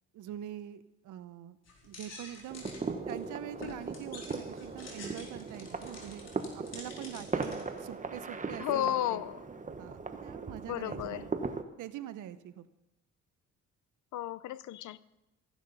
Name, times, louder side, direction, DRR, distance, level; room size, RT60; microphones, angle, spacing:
voice 1, 0.1-1.6 1.8-2.6 3.1-9.2 9.8-11.3 11.8-12.6, right 12 dB, 80° right, 0.9 m, -44 dB
sound 1, 1.7-7.9, left 3 dB, 60° left, 4.4 m, -49 dB
sound 2, 2.5-11.6, right 4 dB, 25° right, 1.2 m, -39 dB
voice 2, 8.6-9.4 10.7-11.3 14.1-15.0, left 13 dB, 75° left, 0.7 m, -33 dB
15.0 x 11.0 x 5.5 m
cardioid pair, 90°, 30 cm